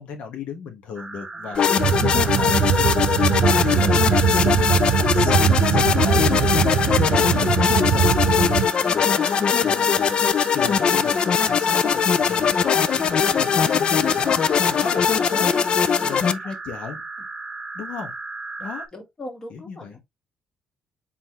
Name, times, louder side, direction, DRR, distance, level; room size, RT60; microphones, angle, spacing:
voice 1, 0.0-8.1 8.9-15.0 15.3-17.0 17.7-18.1 18.6-18.8 19.5-20.0, left 6 dB, 70° left, 1.4 m, -35 dB
sound 1, 1.0-18.9, right 3 dB, 20° right, 0.7 m, -36 dB
voice 2, 1.3-2.4 15.0-15.6 15.9-16.3 17.2-17.3 18.9-20.0, left 1 dB, 25° left, 1.7 m, -41 dB
sound 2, 1.5-16.3, left 7 dB, 45° left, 0.4 m, -20 dB
sound 3, 1.8-8.7, right 9 dB, 80° right, 0.4 m, -21 dB
4.1 x 3.9 x 3.0 m
cardioid pair, 110°, 2 cm